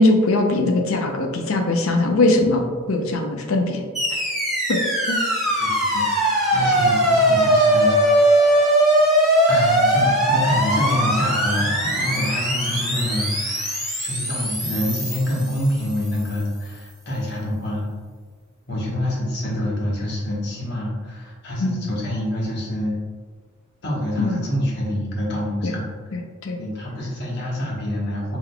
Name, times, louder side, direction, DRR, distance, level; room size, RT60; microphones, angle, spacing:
voice 1, 0.0-3.8 4.1-4.2 4.7-4.8 5.1-5.2 6.6-6.7 21.6-21.9 24.2-24.4 25.6-25.8 26.1-26.6, left 2 dB, 85° left, 3 dB, 0.6 m, -21 dB
sound 1, 3.9-16.2, right 1 dB, ahead, 0.9 m, -20 dB
voice 2, 5.6-8.0 9.5-17.9 18.7-23.0 23.8-25.9 26.6-28.4, left 1 dB, 55° left, -4 dB, 1.2 m, -26 dB
4.8 x 3.8 x 2.2 m, 1.5 s
head